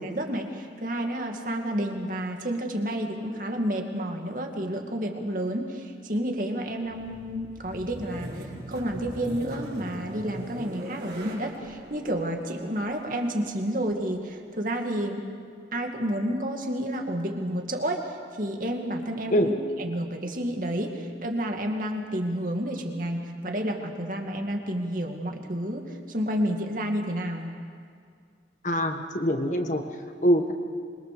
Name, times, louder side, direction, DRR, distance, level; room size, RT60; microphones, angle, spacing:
voice 1, 0.0-8.4 8.7-15.3 15.7-19.5 19.8-27.5, right 1 dB, 50° right, 3 dB, 2.3 m, -30 dB
sound 1, 6.8-14.6, equal, 65° right, 5.3 m, -41 dB
voice 2, 28.6-29.8 30.2-30.5, equal, 45° left, 5 dB, 1.6 m, -23 dB
26.0 x 22.5 x 6.9 m, 2.2 s
head